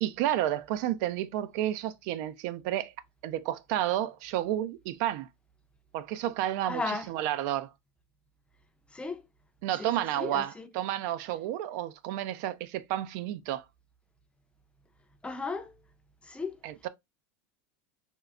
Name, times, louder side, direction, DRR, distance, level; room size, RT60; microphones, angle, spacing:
voice 1, 0.0-2.9 3.2-5.3 5.9-7.7 9.6-13.6 16.6-16.9, right 12 dB, 70° right, 0.3 m, -31 dB
voice 2, 6.6-7.1 8.9-9.2 9.8-10.7 15.2-15.7 16.2-16.6, left 3 dB, 10° left, 0.4 m, -35 dB
3.6 x 2.0 x 2.3 m
supercardioid pair, 125°, 9 cm